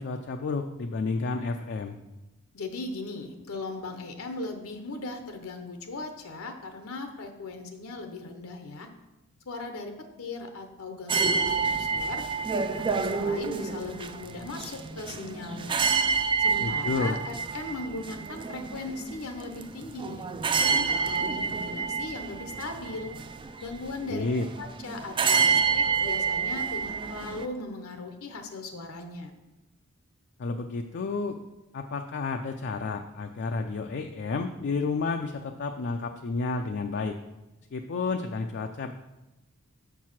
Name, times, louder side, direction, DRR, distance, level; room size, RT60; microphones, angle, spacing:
voice 1, 0.0-1.9 16.6-17.1 24.0-24.5 30.4-31.4 31.7-37.1 37.7-38.9, left 4 dB, 55° left, 5 dB, 0.4 m, -31 dB
voice 2, 2.5-8.9 9.5-12.3 12.8-15.9 16.4-20.3 20.6-23.1 23.6-24.2 24.6-29.3, left 3 dB, 80° left, 6 dB, 0.8 m, -38 dB
sound 1, 11.1-27.5, right 5 dB, 25° right, 0.3 m, -28 dB
6.5 x 4.6 x 5.8 m, 1.0 s
head